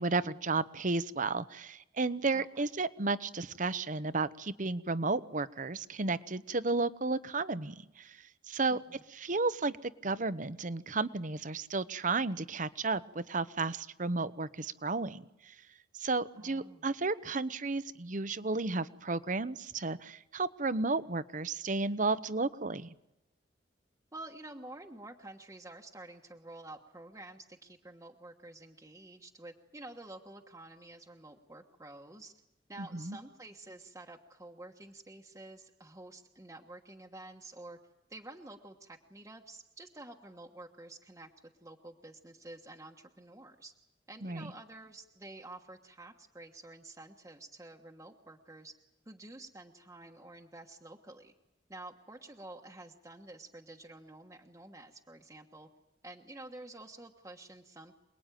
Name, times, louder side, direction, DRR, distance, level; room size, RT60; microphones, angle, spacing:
voice 1, 0.0-8.2 8.5-8.8 9.1-15.5 16.0-22.9 32.8-33.2 44.2-44.5, right 3 dB, 45° right, 14 dB, 0.9 m, -33 dB
voice 2, 2.3-2.6 8.7-9.0 16.4-16.9 24.1-32.3 32.7-37.8 38.1-41.3 41.6-43.7 44.1-48.7 49.0-51.3 51.7-55.7 56.0-58.0, right 2 dB, 15° right, 1 dB, 1.3 m, -50 dB
27.5 x 20.5 x 9.2 m, 0.88 s
head